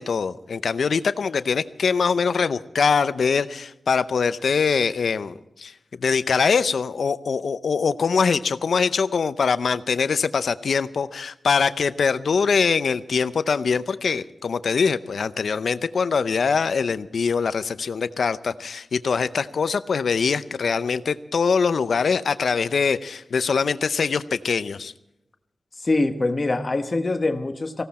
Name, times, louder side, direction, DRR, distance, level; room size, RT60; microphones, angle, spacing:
voice 1, 0.0-5.7 6.0-24.9, left 5 dB, 70° left, 14 dB, 0.6 m, -23 dB
voice 2, 25.8-27.8, left 2 dB, 30° left, 7 dB, 1.2 m, -24 dB
19.0 x 16.5 x 4.3 m, 0.89 s
wide cardioid pair, 180°, 0 cm